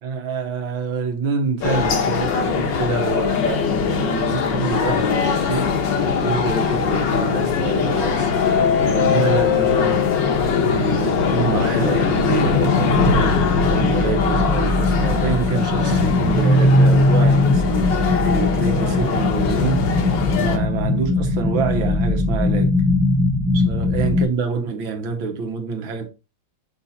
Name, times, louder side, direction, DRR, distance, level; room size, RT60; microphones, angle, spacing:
voice 1, 0.0-5.7 6.2-8.3 8.9-10.0 10.7-19.9 20.3-22.8 23.5-26.1, right 5 dB, 85° right, 2.0 m, -26 dB
sound 1, 1.6-20.6, left 6 dB, 70° left, 1.8 m, -21 dB
sound 2, 12.9-24.2, left 2 dB, 15° right, 0.4 m, -19 dB
6.2 x 4.2 x 4.2 m
omnidirectional pair, 2.1 m